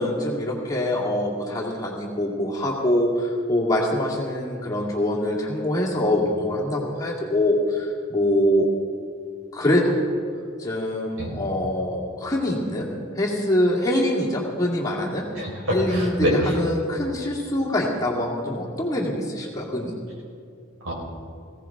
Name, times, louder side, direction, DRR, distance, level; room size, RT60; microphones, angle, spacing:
voice 1, 0.0-8.7 9.5-10.0 10.6-12.9 13.2-15.2 15.7-19.9, left 1 dB, 15° left, -4 dB, 2.2 m, -24 dB
voice 2, 15.4-16.5 20.8-20.9, equal, 65° right, -2 dB, 4.6 m, -25 dB
20.5 x 16.5 x 3.7 m, 2.4 s
head